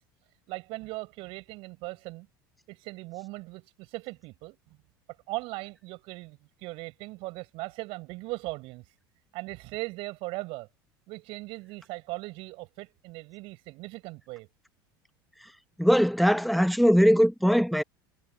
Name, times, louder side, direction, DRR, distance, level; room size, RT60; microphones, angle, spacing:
voice 1, 0.5-2.3 2.7-4.6 5.3-8.8 9.3-10.7 11.1-14.5, right 23 dB, 50° right, 5.5 m, -39 dB
voice 2, 15.8-17.8, equal, ahead, 1.4 m, -21 dB
figure-of-eight pair, 70°, 12 cm